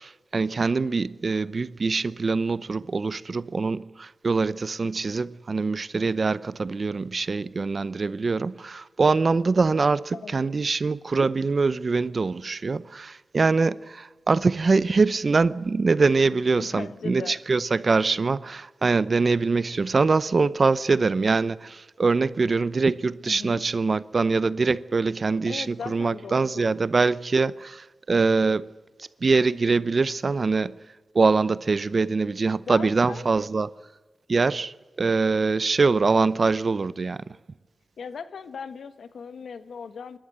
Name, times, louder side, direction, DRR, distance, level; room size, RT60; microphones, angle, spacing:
voice 1, 0.0-28.7 29.0-30.8 31.1-33.7 34.3-37.2, right 4 dB, 50° right, 0.7 m, -23 dB
voice 2, 10.1-10.5 16.6-17.4 23.3-23.6 25.5-26.7 32.7-33.3 38.0-40.2, left 6 dB, 85° left, 1.1 m, -38 dB
27.5 x 13.0 x 8.1 m
wide cardioid pair, 95°, 0 cm